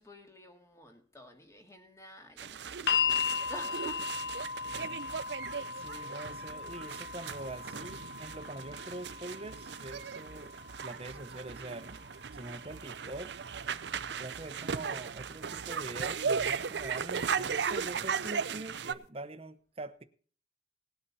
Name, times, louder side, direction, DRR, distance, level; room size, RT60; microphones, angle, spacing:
voice 1, 0.0-4.3, equal, 15° left, 2.2 m, -50 dB
sound 1, 2.4-18.9, right 6 dB, 80° right, 0.6 m, -37 dB
sound 2, 2.9-15.0 16.0-16.1, left 7 dB, 65° left, 0.5 m, -38 dB
voice 2, 5.8-10.5 10.8-12.0 12.3-13.3 14.2-20.0, right 2 dB, 35° right, 1.0 m, -44 dB
19.0 x 8.8 x 4.2 m
head